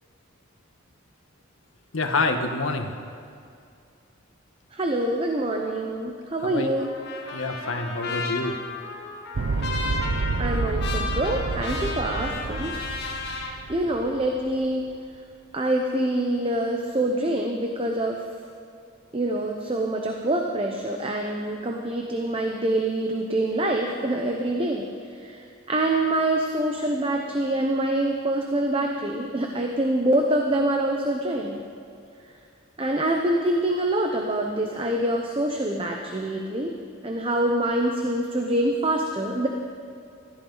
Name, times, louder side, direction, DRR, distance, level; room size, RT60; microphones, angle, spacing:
voice 1, 1.9-2.9 6.4-6.7 7.3-8.6, left 3 dB, 80° left, 5 dB, 1.3 m, -27 dB
voice 2, 4.7-6.9 10.4-12.8 13.7-14.8 15.5-18.2 19.1-24.9 25.2-25.4 25.7-31.6 32.8-36.7 37.0-39.5, right 1 dB, 25° right, 2 dB, 0.9 m, -25 dB
Trumpet, 6.8-13.5, left 4 dB, 55° left, 2.1 m, -33 dB
sound 1, 9.3-14.5, right 3 dB, 85° right, 0.7 m, -29 dB
20.0 x 14.0 x 4.0 m, 2.5 s
head